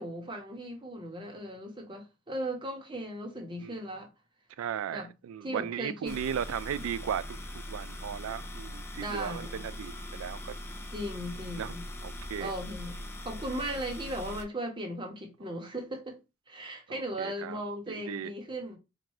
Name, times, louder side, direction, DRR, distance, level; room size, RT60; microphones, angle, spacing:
voice 1, 0.0-4.1 4.9-5.1 5.4-6.1 8.9-9.6 10.9-11.9 12.4-16.2 16.5-18.8, right 1 dB, 25° right, 1.1 m, -37 dB
voice 2, 4.6-10.6 11.6-11.7 12.0-12.5 16.9-17.6 17.9-18.3, right 8 dB, 85° right, 0.3 m, -36 dB
sound 1, 6.1-14.4, left 1 dB, 10° left, 0.6 m, -41 dB
4.3 x 2.5 x 4.7 m
head